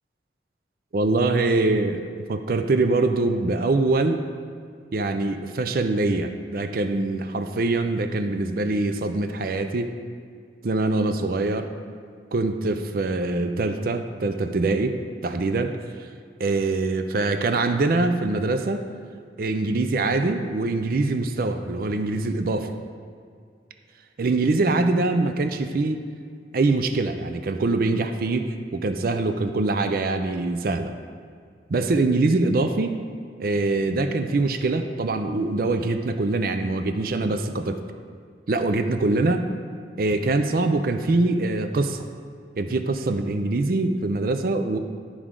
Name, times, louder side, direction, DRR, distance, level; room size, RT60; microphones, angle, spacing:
voice 1, 0.9-4.2 4.9-9.9 10.6-11.7 12.3-15.8 16.4-18.9 19.4-22.7 24.2-26.0 26.5-30.9 31.7-33.0 33.4-37.8 38.5-39.4 40.0-42.1 42.6-44.8, right 2 dB, 55° right, 7 dB, 0.5 m, -23 dB
12.0 x 4.8 x 3.7 m, 2.2 s
head